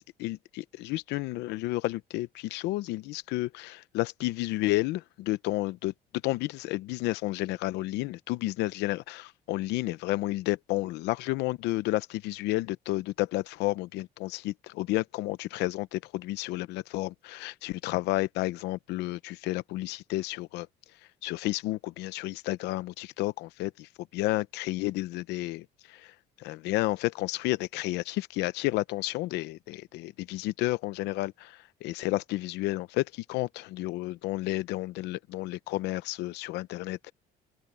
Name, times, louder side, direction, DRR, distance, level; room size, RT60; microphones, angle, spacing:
voice 1, 0.0-5.9 6.2-20.7 21.2-26.1 26.4-37.1, left 18 dB, 90° left, 0.8 m, -31 dB
cardioid pair, 110°, 17 cm